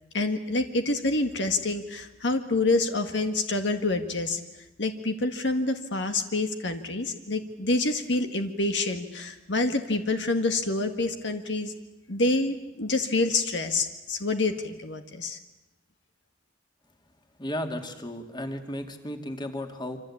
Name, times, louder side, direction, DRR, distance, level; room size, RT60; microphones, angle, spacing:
voice 1, 0.1-4.4 4.8-11.7 12.1-15.4, left 2 dB, 70° left, 6 dB, 1.8 m, -27 dB
voice 2, 17.4-20.0, left 1 dB, 25° left, 5 dB, 2.6 m, -34 dB
26.5 x 26.0 x 8.7 m, 0.98 s
head